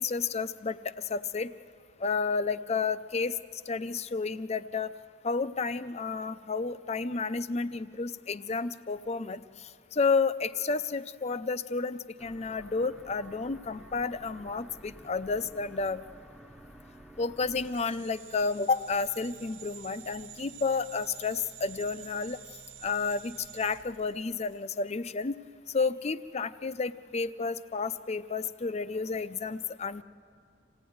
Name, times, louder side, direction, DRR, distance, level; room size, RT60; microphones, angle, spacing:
voice 1, 0.0-1.5 2.0-3.3 3.7-4.9 5.2-16.0 17.2-22.4 22.8-25.4 25.7-30.0, left 4 dB, 35° left, 14 dB, 0.5 m, -31 dB
sound 1, 12.2-17.7, right 1 dB, 5° right, 0.7 m, -51 dB
sound 2, 17.6-24.7, right 9 dB, 70° right, 0.9 m, -49 dB
26.5 x 16.5 x 9.4 m, 2.3 s
head